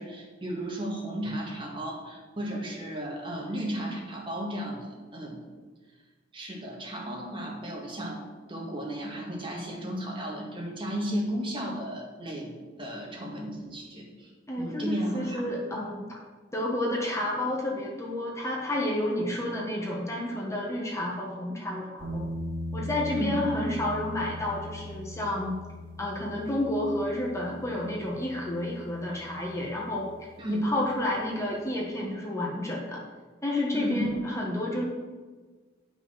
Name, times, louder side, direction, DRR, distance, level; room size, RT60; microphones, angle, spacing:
voice 1, 0.0-5.4 6.3-8.2 8.5-12.5 12.8-14.3 14.6-15.4 23.1-23.3 30.4-30.7 33.7-34.1, right 1 dB, 25° right, -2 dB, 2.0 m, -34 dB
voice 2, 14.5-16.2 16.5-22.3 22.7-25.5 26.0-33.0 33.4-34.8, left 1 dB, 15° left, -3 dB, 1.5 m, -30 dB
sound 1, 22.0-30.9, left 1 dB, 75° right, 2.1 m, -40 dB
9.8 x 6.1 x 5.8 m, 1.4 s
head